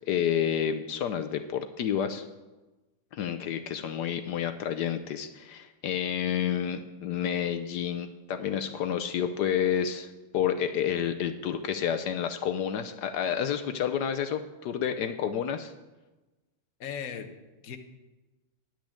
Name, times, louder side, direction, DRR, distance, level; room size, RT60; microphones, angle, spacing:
voice 1, 0.1-2.2 3.1-10.1 10.3-15.7, left 9 dB, 75° left, 8 dB, 1.0 m, -29 dB
voice 2, 16.8-17.8, left 7 dB, 55° left, 7 dB, 1.1 m, -38 dB
10.0 x 6.2 x 8.4 m, 1.1 s
omnidirectional pair, 2.3 m